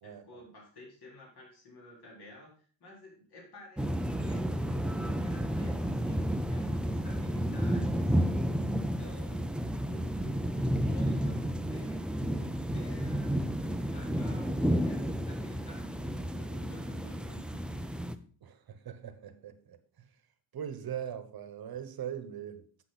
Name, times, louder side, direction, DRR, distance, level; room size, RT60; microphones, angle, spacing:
voice 1, 0.0-3.9 4.2-8.4 8.7-9.4 9.8-18.0, left 1 dB, 60° left, -2 dB, 4.1 m, -52 dB
sound 1, 3.8-18.2, equal, ahead, 0.5 m, -31 dB
voice 2, 18.4-20.1 20.5-22.6, right 9 dB, 55° right, 10 dB, 1.2 m, -41 dB
8.0 x 7.6 x 4.1 m, 0.43 s
cardioid pair, 120°, 44 cm